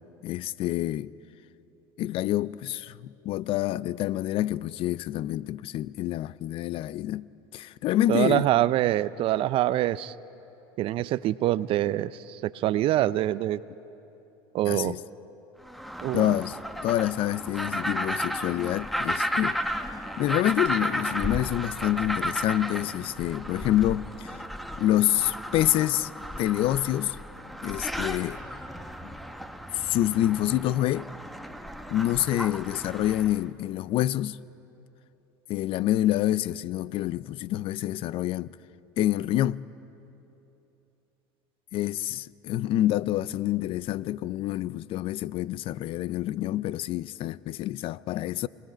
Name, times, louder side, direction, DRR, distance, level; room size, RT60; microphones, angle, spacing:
voice 1, 0.2-1.1 2.0-8.5 14.7-15.0 16.1-16.6 16.8-19.6 20.2-24.4 24.8-26.1 26.4-27.2 27.6-28.4 29.0-29.1 29.7-31.1 31.9-34.4 35.5-38.5 39.0-39.7 41.7-48.5, left 13 dB, 55° left, 0.4 m, -27 dB
voice 2, 8.1-10.1 10.8-13.6 14.5-15.0 16.0-16.4, right 14 dB, 55° right, 0.5 m, -25 dB
sound 1, 15.6-33.4, equal, ahead, 1.1 m, -34 dB
28.5 x 19.0 x 5.1 m
supercardioid pair, 100°, 11 cm